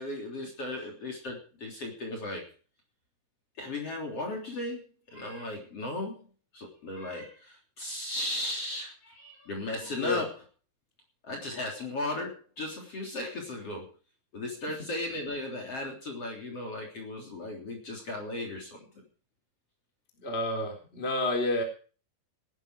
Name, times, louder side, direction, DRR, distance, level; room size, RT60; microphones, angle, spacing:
voice 1, 0.0-2.4 3.6-4.8 5.1-6.2 6.5-10.4 11.2-13.9 14.3-18.8, left 1 dB, 35° left, 2 dB, 4.1 m, -36 dB
voice 2, 20.2-21.6, left 2 dB, 15° left, 2 dB, 3.6 m, -29 dB
18.5 x 11.5 x 4.9 m, 0.38 s
omnidirectional pair, 5.0 m